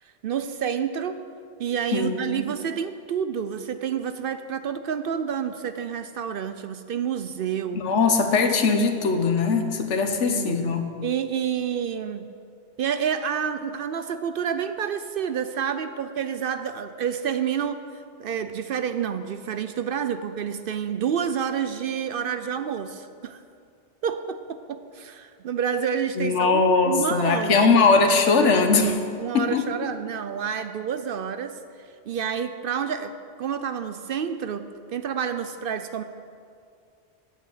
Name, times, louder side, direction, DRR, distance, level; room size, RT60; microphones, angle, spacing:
voice 1, 0.2-1.2 1.6-7.8 10.2-10.6 11.0-12.3 12.8-23.4 24.0-27.7 29.2-31.5 32.1-33.1 33.4-34.6 34.9-36.0, right 8 dB, 60° right, 10 dB, 0.6 m, -29 dB
voice 2, 1.9-2.4 7.7-10.9 26.2-29.0 29.3-29.6, left 4 dB, 90° left, 5 dB, 1.2 m, -20 dB
8.4 x 8.3 x 7.8 m, 2.3 s
omnidirectional pair, 1.2 m